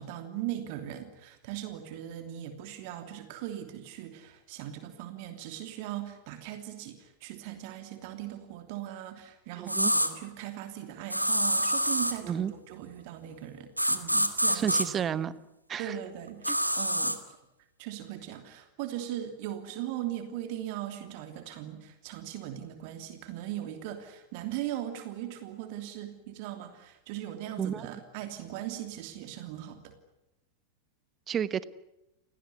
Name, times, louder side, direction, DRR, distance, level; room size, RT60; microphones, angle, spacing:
voice 1, 0.0-14.9 15.8-17.4 17.8-29.9, right 12 dB, 45° right, 7 dB, 3.0 m, -39 dB
voice 2, 9.6-9.9 12.3-12.5 14.5-15.3 15.7-15.9 16.5-16.6 27.6-27.9 31.3-31.6, right 8 dB, 25° right, 17 dB, 1.2 m, -31 dB
sound 1, 9.7-10.1 11.1-12.2 13.8-14.9 16.4-17.2, equal, 90° right, 1.9 m, -26 dB
29.0 x 18.0 x 9.6 m, 0.91 s
figure-of-eight pair, 90°, 0 cm